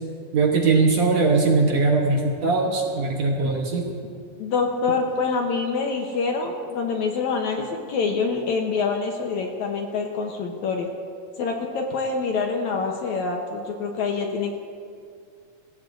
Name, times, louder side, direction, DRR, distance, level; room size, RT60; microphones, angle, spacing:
voice 1, 0.3-3.8, right 3 dB, 60° right, 0 dB, 2.0 m, -20 dB
voice 2, 4.4-10.9 11.4-14.6, left 4 dB, 70° left, 2 dB, 2.0 m, -26 dB
26.0 x 15.5 x 2.7 m, 2.3 s
omnidirectional pair, 4.1 m